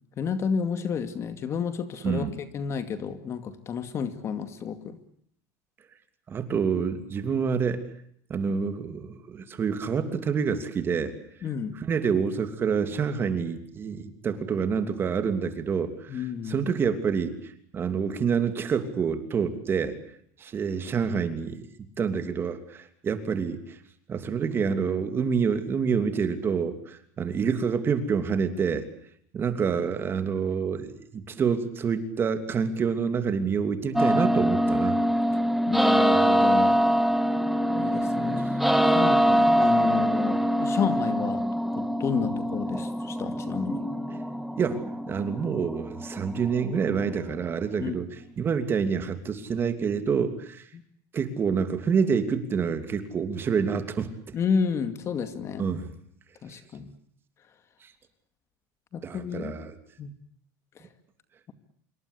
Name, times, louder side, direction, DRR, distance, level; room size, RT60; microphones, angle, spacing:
voice 1, 0.2-2.3 2.5-5.0 11.4-11.8 16.1-16.6 35.7-36.8 37.7-38.5 38.8-41.4 41.7-43.9 47.8-48.0 54.3-55.7 56.4-56.9 58.9-59.5 60.0-60.1, left 6 dB, 30° left, 10 dB, 2.3 m, -30 dB
voice 2, 2.0-2.4 6.3-7.9 8.3-11.1 11.7-20.0 20.4-21.7 22.0-23.8 24.1-28.9 29.3-35.0 38.3-38.4 44.6-50.7 51.1-54.3 55.6-55.9 57.8-57.9 59.0-59.7, right 6 dB, 25° right, 9 dB, 2.9 m, -27 dB
sound 1, 34.0-47.9, equal, ahead, 1.6 m, -24 dB
26.5 x 23.0 x 8.3 m, 0.65 s
supercardioid pair, 145°, 9 cm